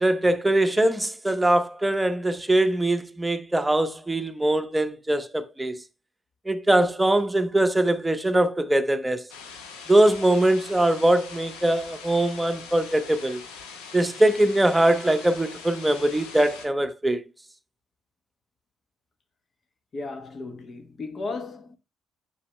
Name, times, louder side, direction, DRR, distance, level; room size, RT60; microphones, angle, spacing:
voice 1, 0.0-5.8 6.5-9.2 9.9-13.4 13.9-17.2, right 1 dB, 10° right, 0.9 m, -22 dB
sound 1, 9.3-16.7, left 5 dB, 70° left, 1.3 m, -42 dB
voice 2, 19.9-21.8, left 3 dB, 40° left, 1.1 m, -35 dB
9.8 x 7.1 x 2.2 m
figure-of-eight pair, 45°, 0 cm